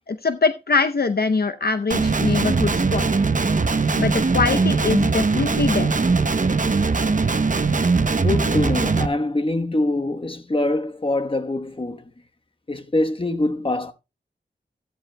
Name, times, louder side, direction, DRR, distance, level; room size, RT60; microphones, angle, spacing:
voice 1, 0.1-3.1 4.0-5.9, left 4 dB, 60° left, 0.7 m, -23 dB
Guitar, 1.9-9.1, right 4 dB, 45° right, 0.8 m, -20 dB
voice 2, 8.1-12.1 12.7-13.9, left 2 dB, 30° left, 1.1 m, -24 dB
14.5 x 13.0 x 2.2 m
wide cardioid pair, 65°, 18 cm